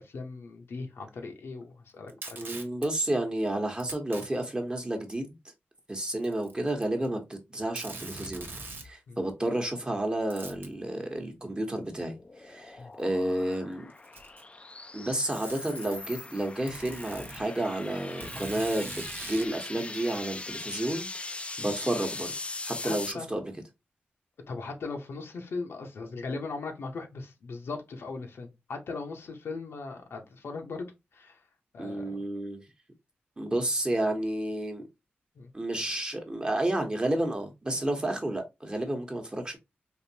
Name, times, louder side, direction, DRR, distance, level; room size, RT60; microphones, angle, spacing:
voice 1, 0.0-2.5 9.1-9.2 12.8-12.9 21.6-21.7 22.8-23.3 24.4-31.4 31.7-32.2 35.4-35.5, left 3 dB, 80° left, 0.8 m, -39 dB
Packing tape duct tape, 2.1-2.9 3.8-4.3 5.1-5.2 6.2-7.1 7.3-7.4 7.8-8.9 10.3-10.7 12.0-12.1 13.0-13.1 13.9-14.5 15.3-16.0 16.7-17.4 18.2-19.5, right 3 dB, 55° right, 0.9 m, -42 dB
voice 2, 2.4-5.4 5.9-8.5 8.8-13.9 14.9-21.1 21.6-22.3 22.6-23.4 31.8-32.6 33.4-34.8 35.5-39.6, right 1 dB, 25° right, 1.0 m, -31 dB
sound 1, 11.4-23.1, left 3 dB, 30° left, 0.3 m, -41 dB
3.5 x 2.6 x 2.7 m
cardioid pair, 65°, 4 cm